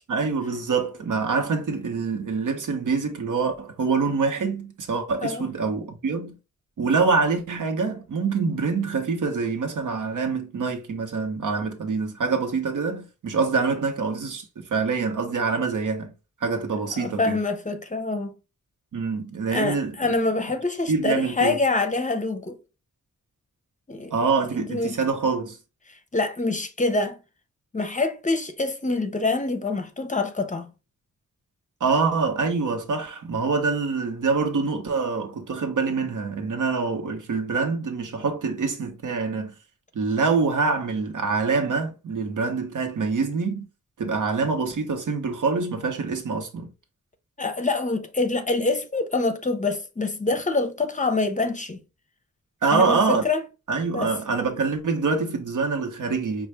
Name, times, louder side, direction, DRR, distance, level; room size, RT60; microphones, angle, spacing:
voice 1, 0.1-6.4 6.8-16.1 16.4-17.4 18.9-20.1 20.9-21.6 24.1-25.6 31.8-39.5 39.9-43.7 44.0-46.7 52.6-53.2 53.7-56.5, right 4 dB, 90° right, 1.1 m, -25 dB
voice 2, 17.0-18.3 19.5-22.6 23.9-24.1 24.6-25.0 26.1-27.2 27.7-30.7 47.4-51.8 52.7-53.4 53.9-54.1, left 3 dB, 25° left, 0.5 m, -25 dB
5.4 x 2.4 x 3.3 m
wide cardioid pair, 170°, 30 cm